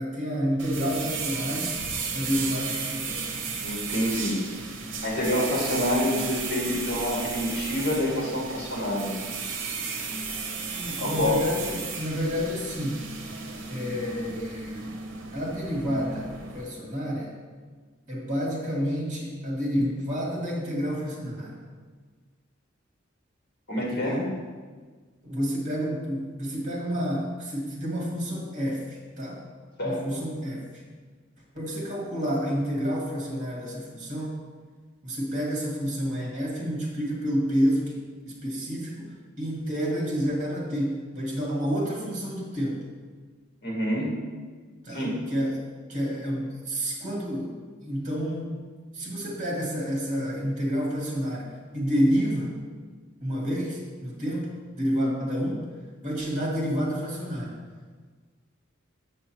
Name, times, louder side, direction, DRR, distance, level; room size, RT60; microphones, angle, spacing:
voice 1, 0.0-1.7 2.1-3.5 10.7-13.1 13.7-14.9 15.3-16.3 16.5-17.4 18.1-21.6 23.9-24.3 25.3-29.4 29.8-30.7 31.5-34.4 35.0-38.0 38.3-42.9 44.8-45.6 45.9-48.5 48.9-52.6 53.2-54.5 54.8-55.7 56.0-57.6, equal, 40° right, -3 dB, 2.0 m, -29 dB
sound 1, 0.6-16.6, right 4 dB, 70° right, 0.8 m, -34 dB
voice 2, 3.6-4.4 5.0-9.1 11.0-11.4 23.7-24.3 29.8-30.2 43.6-44.2 44.9-45.2, left 1 dB, 55° left, -4 dB, 2.0 m, -27 dB
7.3 x 6.3 x 3.0 m, 1.5 s
head